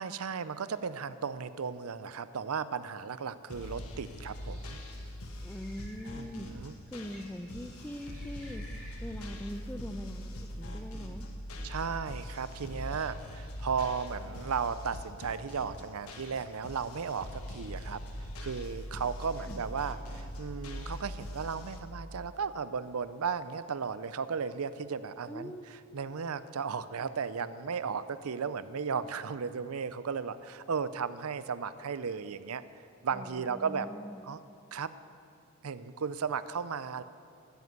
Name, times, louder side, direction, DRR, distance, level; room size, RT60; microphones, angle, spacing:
voice 1, 0.0-4.8 6.2-6.7 11.6-18.0 18.4-25.5 25.9-32.6 33.0-33.9 34.2-34.4 34.7-34.9 35.6-37.0, right 6 dB, 90° right, 14 dB, 0.6 m, -35 dB
sound 1, 3.5-21.8, equal, 85° left, 1.3 m, -42 dB
Bird, 4.0-9.4, right 1 dB, 45° right, 4.1 m, -57 dB
voice 2, 5.4-6.5 6.9-8.6 9.0-11.3 19.4-19.6 25.3-25.7 33.1-34.4, equal, 5° left, 9 dB, 0.6 m, -42 dB
13.0 x 9.7 x 8.1 m, 2.4 s
head